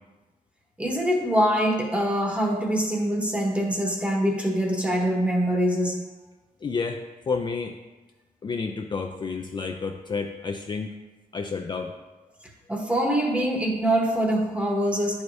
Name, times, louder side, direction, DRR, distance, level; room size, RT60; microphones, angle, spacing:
voice 1, 0.8-6.0 12.7-15.2, equal, 10° right, 0 dB, 1.0 m, -24 dB
voice 2, 6.6-7.8 8.4-10.9 11.3-11.9, left 4 dB, 30° left, 3 dB, 0.4 m, -30 dB
10.5 x 4.7 x 2.6 m, 1.2 s
wide cardioid pair, 145°, 15 cm